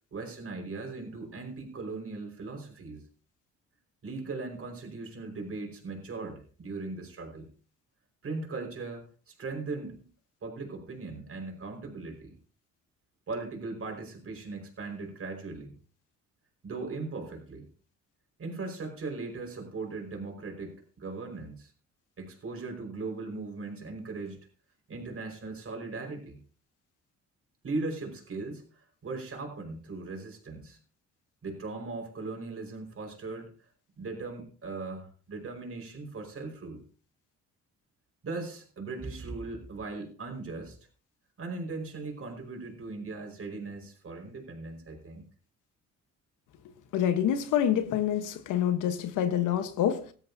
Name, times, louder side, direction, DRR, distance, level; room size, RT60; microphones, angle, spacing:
voice 1, 0.1-3.0 4.0-7.5 8.2-10.0 10.4-12.3 13.3-15.7 16.6-17.7 18.4-21.7 22.2-24.4 24.9-26.4 27.6-30.8 31.4-33.5 34.0-36.8 38.2-40.8 41.4-45.2, right 3 dB, 45° right, 5.0 m, -38 dB
voice 2, 46.9-50.1, left 10 dB, 90° left, 1.2 m, -27 dB
17.0 x 13.0 x 2.8 m
cardioid pair, 90°, 30 cm